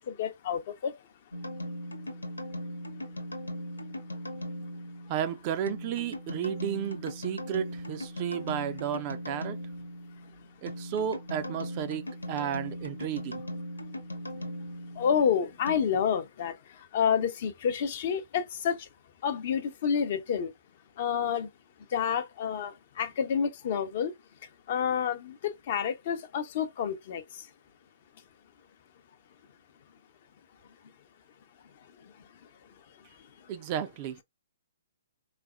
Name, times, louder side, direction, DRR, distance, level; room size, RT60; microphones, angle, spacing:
voice 1, 0.1-0.9 15.0-18.9 19.2-20.5 21.0-21.5 21.9-24.1 24.7-27.2, left 7 dB, 45° left, 0.7 m, -29 dB
sound 1, 1.3-15.8, equal, 90° left, 1.0 m, -39 dB
voice 2, 5.1-9.6 10.6-13.4 33.5-34.2, right 9 dB, 35° right, 0.5 m, -33 dB
4.0 x 2.0 x 2.3 m
figure-of-eight pair, 125°, 0 cm